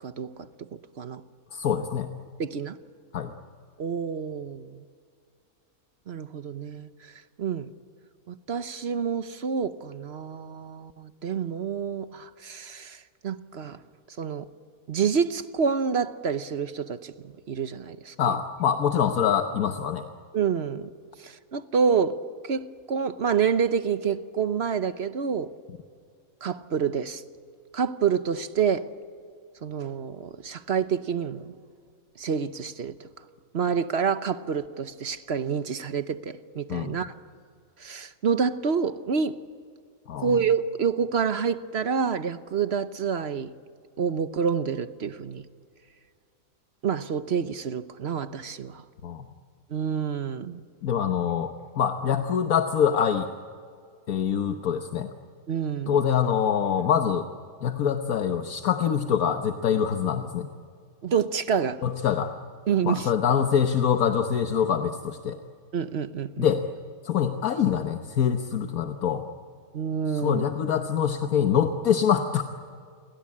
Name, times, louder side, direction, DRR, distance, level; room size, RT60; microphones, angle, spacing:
voice 1, 0.0-0.3 0.6-1.2 2.4-2.8 3.8-4.8 6.1-7.7 8.3-13.8 14.2-14.5 14.9-18.1 20.3-20.9 21.2-22.2 22.4-25.5 26.4-27.2 27.7-28.9 29.6-31.5 32.2-33.1 33.5-37.2 37.8-39.4 40.2-43.5 44.0-45.4 46.8-48.8 49.7-50.6 55.5-56.0 61.0-61.8 62.7-63.1 65.7-66.5 69.7-70.5, right 6 dB, 50° right, 12 dB, 1.0 m, -28 dB
voice 2, 1.5-2.1 3.1-3.3 18.2-20.0 36.7-37.0 40.1-40.4 49.0-49.3 50.8-53.3 54.1-55.1 55.9-57.3 57.6-60.5 61.8-62.3 62.8-65.4 66.4-66.6 67.0-69.2 70.1-72.4, left 8 dB, 70° left, 6 dB, 1.5 m, -25 dB
29.5 x 23.0 x 8.6 m, 2.2 s
omnidirectional pair, 1.6 m